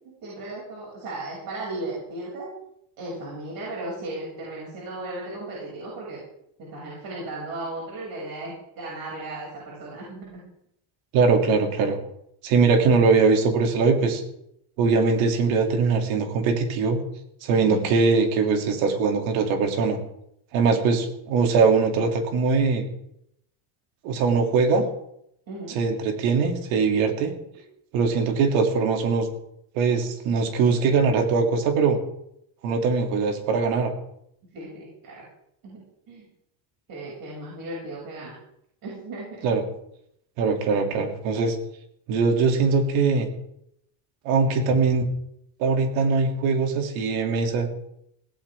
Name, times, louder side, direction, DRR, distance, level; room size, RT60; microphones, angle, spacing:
voice 1, 0.2-2.5 3.0-6.2 6.6-10.4 17.6-17.9 25.5-25.8 34.5-35.2 35.6-36.2 36.9-38.4 38.8-39.6, right 2 dB, 45° right, -5 dB, 7.3 m, -36 dB
voice 2, 11.1-12.0 12.4-14.2 14.8-17.0 17.4-20.0 20.5-22.9 24.0-24.8 25.7-27.3 27.9-29.3 29.7-32.0 32.6-33.9 39.4-39.6 40.4-41.6 42.1-43.3 44.2-45.0 45.6-47.7, right 4 dB, 80° right, 4 dB, 3.2 m, -21 dB
17.5 x 17.0 x 3.8 m, 0.75 s
cardioid pair, 155°, 47 cm